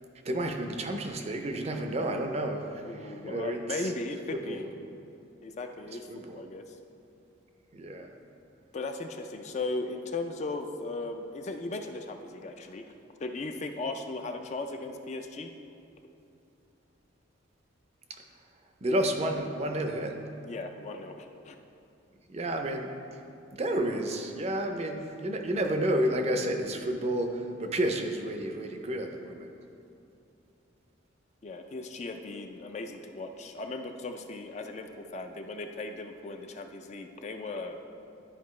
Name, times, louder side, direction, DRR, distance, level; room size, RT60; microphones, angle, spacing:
voice 1, 0.2-3.9 4.3-4.7 6.1-6.4 7.7-8.1 18.1-18.2 18.8-20.2 22.3-23.2 23.5-29.5, right 1 dB, 30° right, 4 dB, 0.5 m, -31 dB
voice 2, 2.8-4.6 5.4-6.8 8.7-15.5 20.4-21.6 31.4-37.8, left 3 dB, 35° left, 5 dB, 0.3 m, -37 dB
11.0 x 4.9 x 3.1 m, 2.7 s
head